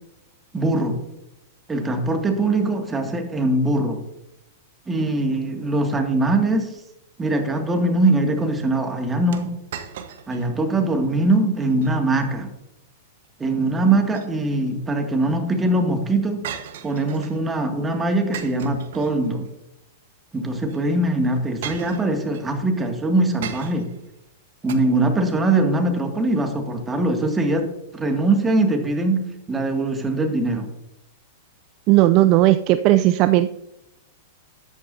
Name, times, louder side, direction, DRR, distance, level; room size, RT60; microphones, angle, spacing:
voice 1, 0.5-1.0 1.7-4.0 4.9-6.8 7.2-9.6 10.3-12.5 13.4-16.6 16.8-19.5 20.3-23.9 24.6-30.7, right 2 dB, 15° right, 4 dB, 2.2 m, -22 dB
sound 1, 9.3-10.5 10.9-11.0 11.6-11.9 13.8-14.7 16.4-17.4 18.3-19.5 20.6-20.8 21.6-22.5 23.4-24.0 24.7-24.8, right 9 dB, 60° right, 1.2 m, -36 dB
voice 2, 31.9-33.5, right 15 dB, 45° right, 11 dB, 0.4 m, -16 dB
13.0 x 11.0 x 2.7 m, 0.87 s
figure-of-eight pair, 100°, 0 cm